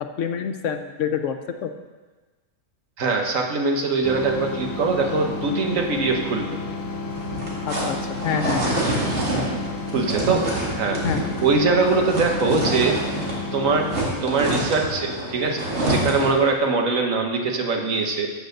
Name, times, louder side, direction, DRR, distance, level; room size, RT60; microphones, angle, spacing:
voice 1, 0.2-1.4 1.6-1.7 7.7-8.8 11.0-11.2, left 8 dB, 70° left, 7 dB, 1.0 m, -27 dB
voice 2, 3.0-6.6 9.9-10.5 10.8-11.0 11.4-13.0 13.5-13.9 14.2-15.6 15.9-18.3, right 4 dB, 80° right, 2 dB, 1.5 m, -22 dB
sound 1, 4.0-14.0, left 3 dB, 20° left, 0.7 m, -32 dB
sound 2, 7.1-13.4 13.7-16.4, right 1 dB, 60° right, 2.3 m, -27 dB
7.7 x 6.5 x 6.6 m, 1.3 s
omnidirectional pair, 1.4 m